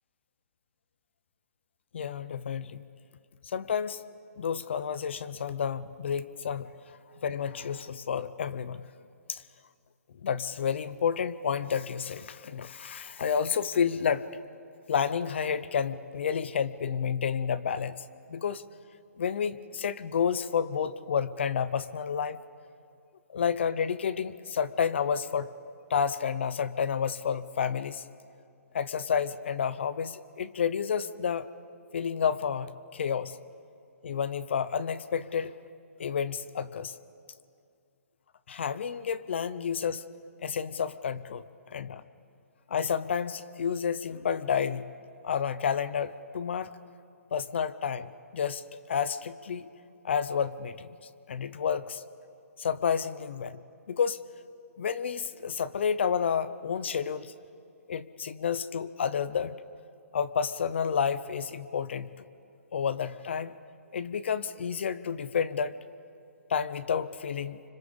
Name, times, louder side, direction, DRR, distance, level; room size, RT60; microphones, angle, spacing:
voice 1, 1.9-2.8 3.4-4.0 4.4-6.7 7.2-8.8 9.3-9.4 10.2-14.3 14.9-18.0 18.3-18.6 19.2-22.4 23.3-25.5 25.9-28.0 28.7-31.5 31.9-33.4 34.0-35.5 36.0-36.9 38.5-40.0 40.4-42.0 42.7-44.9 45.2-46.7 47.3-49.7 50.0-51.0 51.3-52.0 52.6-53.6 53.9-54.2 54.8-57.3 57.9-59.6 60.1-62.2 62.7-63.5 63.9-65.8 66.5-67.6, left 7 dB, 45° left, 16 dB, 0.7 m, -30 dB
26.0 x 25.5 x 7.1 m, 2.5 s
hypercardioid pair, 175°, 9 cm